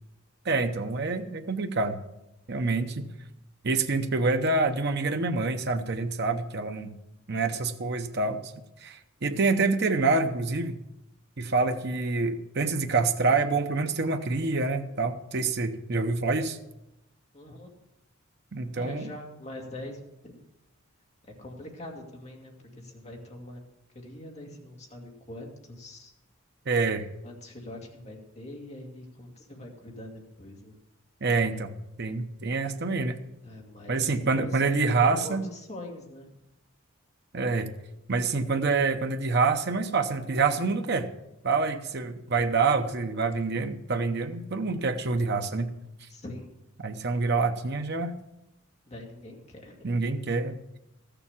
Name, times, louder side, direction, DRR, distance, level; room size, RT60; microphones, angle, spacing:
voice 1, 0.4-2.0 2.5-3.0 3.6-6.9 7.3-8.4 8.8-10.8 11.4-16.6 18.5-19.1 26.7-27.1 31.2-31.7 32.0-33.2 33.9-35.4 37.3-37.7 38.1-41.1 41.4-45.7 46.8-48.1 49.8-50.8, right 3 dB, 50° right, 7 dB, 0.8 m, -26 dB
voice 2, 17.3-17.7 18.7-20.4 21.4-23.6 23.9-26.1 27.2-30.7 33.4-36.4 46.1-46.5 48.9-50.0, left 1 dB, 30° left, 0 dB, 2.2 m, -43 dB
13.5 x 6.9 x 7.2 m, 0.89 s
head